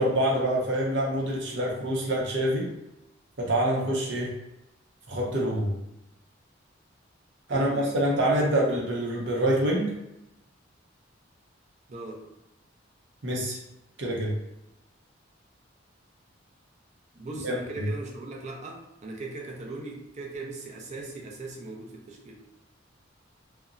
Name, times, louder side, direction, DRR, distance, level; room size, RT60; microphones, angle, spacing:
voice 1, 0.0-2.7 3.4-4.3 5.1-5.7 7.5-9.9 13.2-13.6 14.0-14.3 17.4-17.9, right 1 dB, 65° right, -3 dB, 0.7 m, -26 dB
voice 2, 7.5-8.7 11.9-12.2 17.1-22.4, right 2 dB, 35° right, -1 dB, 0.5 m, -39 dB
2.8 x 2.1 x 2.5 m, 0.89 s
head